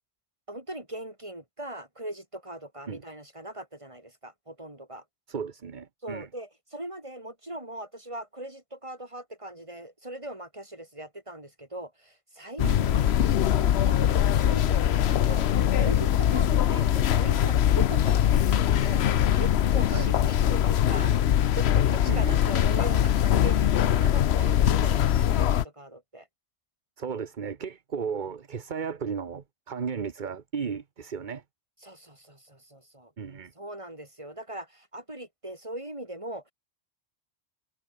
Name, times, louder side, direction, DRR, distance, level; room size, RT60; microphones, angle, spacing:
voice 1, 0.5-5.0 6.0-13.1 13.5-15.5 15.8-19.0 19.4-21.1 21.5-26.3 31.8-33.1 33.6-36.5, right 1 dB, 25° right, 4.8 m, -40 dB
voice 2, 5.3-6.3 12.6-13.0 19.9-20.1 22.1-22.4 27.0-31.4 33.2-33.5, right 6 dB, 45° right, 1.1 m, -35 dB
sound 1, 12.6-25.6, left 10 dB, 65° left, 1.0 m, -22 dB
omnidirectional pair, 1.2 m